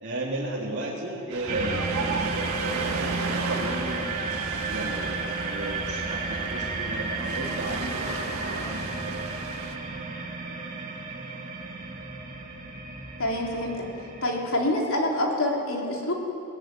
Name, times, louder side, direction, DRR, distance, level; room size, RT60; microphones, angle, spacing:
voice 1, 0.0-9.2, right 2 dB, 55° right, -7 dB, 3.2 m, -34 dB
Ocean, 1.3-9.7, right 4 dB, 85° right, 1.8 m, -36 dB
sound 1, 1.5-14.4, right 3 dB, 40° right, 2.3 m, -32 dB
voice 2, 13.2-13.9 14.2-16.1, left 1 dB, 70° left, -1 dB, 3.7 m, -26 dB
20.0 x 17.5 x 9.2 m, 2.7 s
head